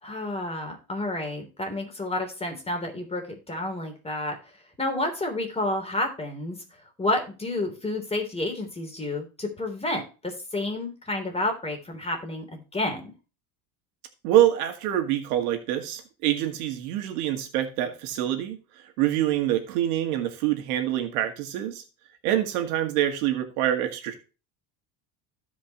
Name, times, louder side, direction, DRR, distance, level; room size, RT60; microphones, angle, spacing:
voice 1, 0.0-4.3 4.8-6.6 7.0-13.1, left 2 dB, 15° left, 3 dB, 3.3 m, -30 dB
voice 2, 14.2-18.6 19.0-21.8 22.2-24.2, right 12 dB, 85° right, 6 dB, 2.0 m, -25 dB
15.5 x 5.3 x 3.0 m, 0.32 s
supercardioid pair, 115°, 43 cm